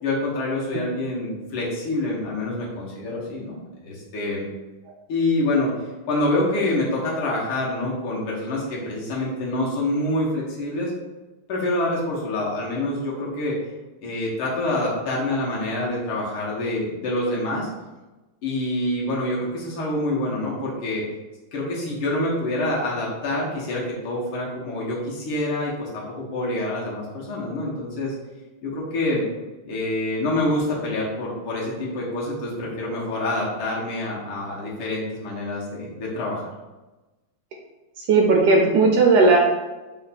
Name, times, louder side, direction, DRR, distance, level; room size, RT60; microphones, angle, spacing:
voice 1, 0.0-4.5 5.1-5.7 6.1-10.9 11.5-13.6 14.0-17.7 18.4-21.0 21.5-28.1 28.6-29.2 29.7-36.4, left 1 dB, 90° left, -5 dB, 1.8 m, -26 dB
voice 2, 38.0-39.4, right 3 dB, 70° right, 1 dB, 1.0 m, -16 dB
5.2 x 2.2 x 4.0 m, 1.1 s
omnidirectional pair, 2.2 m